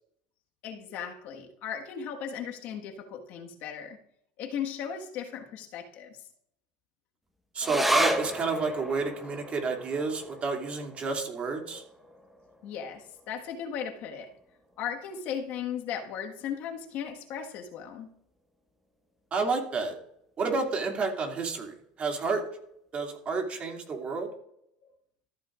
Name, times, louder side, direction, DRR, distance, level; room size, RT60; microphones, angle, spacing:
voice 1, 0.6-4.0 4.4-6.2 11.7-11.8 12.6-14.3 14.8-18.1, left 8 dB, 60° left, 1.5 m, -37 dB
voice 2, 7.5-11.8 19.3-19.9 20.4-22.4 22.9-24.3, right 4 dB, 35° right, 2.5 m, -30 dB
sound 1, 7.6-14.4 14.7-14.8 15.1-15.8 16.4-16.5, equal, 5° right, 1.2 m, -34 dB
14.0 x 7.9 x 2.5 m
supercardioid pair, 105°, 4 cm